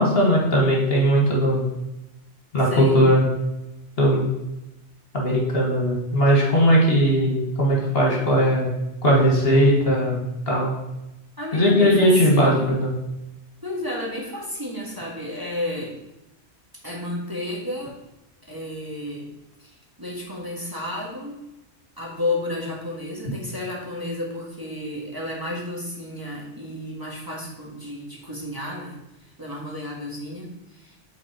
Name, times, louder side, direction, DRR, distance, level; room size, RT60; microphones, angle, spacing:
voice 1, 0.0-1.6 2.5-3.3 4.0-4.3 5.1-8.7 9.0-10.7 11.5-12.9, equal, 60° left, -3 dB, 1.9 m, -19 dB
voice 2, 2.6-3.1 11.4-12.8 13.6-15.9 16.8-18.0 18.4-19.3 19.6-21.4 22.0-29.0 29.4-31.0, left 1 dB, 20° right, -4 dB, 1.6 m, -32 dB
8.4 x 4.3 x 4.3 m, 0.94 s
omnidirectional pair, 1.2 m